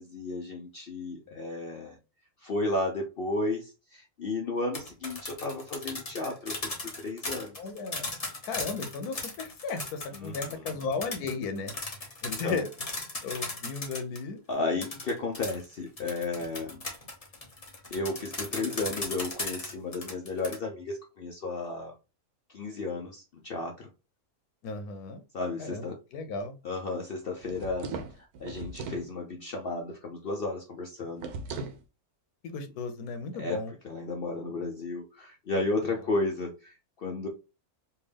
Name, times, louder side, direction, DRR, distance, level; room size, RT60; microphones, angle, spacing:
voice 1, 0.0-2.0 2.4-7.6 10.1-10.8 12.3-12.6 13.3-13.5 14.5-16.8 17.9-21.9 22.5-23.9 25.3-26.0 26.6-31.3 33.3-37.3, left 2 dB, 60° left, 1 dB, 0.6 m, -33 dB
sound 1, 4.6-14.2 14.8-20.6, left 2 dB, 30° left, 1.0 m, -37 dB
voice 2, 7.6-8.1 8.4-11.7 12.2-12.7 13.2-14.4 24.6-25.2 25.6-26.5 32.4-33.7, left 4 dB, 85° left, 9 dB, 1.2 m, -35 dB
sound 2, 27.4-29.1 31.2-31.8, right 4 dB, 85° right, 1.1 m, -38 dB
3.4 x 2.6 x 3.3 m, 0.29 s
omnidirectional pair, 1.6 m